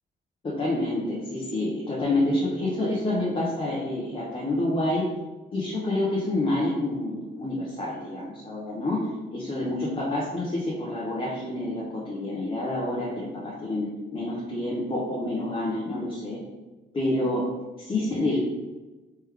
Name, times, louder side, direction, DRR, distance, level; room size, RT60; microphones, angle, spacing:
voice 1, 0.4-5.1 5.5-16.4 16.9-17.5 17.8-18.4, left 1 dB, 25° left, -5 dB, 0.9 m, -28 dB
3.4 x 3.1 x 3.4 m, 1.2 s
cardioid pair, 90°, 20 cm